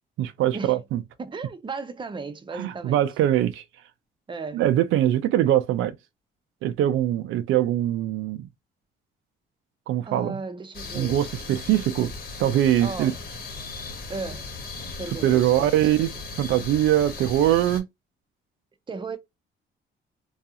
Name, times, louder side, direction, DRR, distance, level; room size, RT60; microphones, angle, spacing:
voice 1, 0.2-1.0 2.6-3.6 4.5-6.0 6.6-8.5 9.9-10.4 10.9-12.1 12.4-13.1 15.2-16.1 16.4-17.8, right 12 dB, 85° right, 0.4 m, -22 dB
voice 2, 1.2-3.0 4.3-4.6 10.0-11.2 12.8-13.2 14.1-14.6 15.0-16.1 18.9-19.2, right 4 dB, 25° right, 0.6 m, -35 dB
sound 1, 10.7-17.8, left 4 dB, 50° left, 1.2 m, -37 dB
2.4 x 2.3 x 2.7 m
cardioid pair, 90°, 20 cm